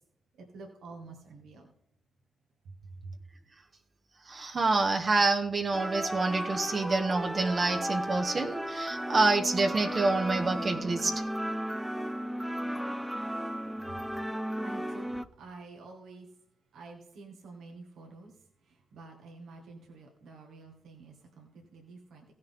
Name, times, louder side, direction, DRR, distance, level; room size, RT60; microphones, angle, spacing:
voice 1, 0.5-1.7 3.0-3.1 14.6-16.3 16.7-18.3 18.7-22.2, right 3 dB, 75° right, 0 dB, 1.9 m, -48 dB
voice 2, 4.3-11.2, right 3 dB, 50° right, 3 dB, 1.4 m, -27 dB
sound 1, 5.7-15.2, equal, 5° right, 0.7 m, -35 dB
16.0 x 6.6 x 3.7 m, 0.69 s
hypercardioid pair, 45°, 0 cm